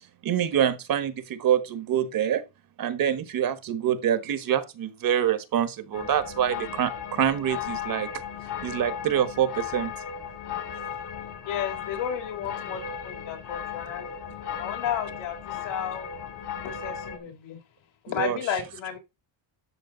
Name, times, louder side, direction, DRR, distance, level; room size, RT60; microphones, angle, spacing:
voice 1, 0.2-2.4 2.8-8.1 8.6-9.9 18.2-18.4, right 9 dB, 45° right, 1.5 m, -25 dB
sound 1, 5.9-17.2, left 8 dB, 55° left, 3.0 m, -36 dB
voice 2, 11.5-14.1 14.6-16.1 16.6-17.6 18.0-19.0, left 8 dB, 75° left, 4.3 m, -33 dB
12.5 x 6.4 x 4.0 m
cardioid pair, 130°, 46 cm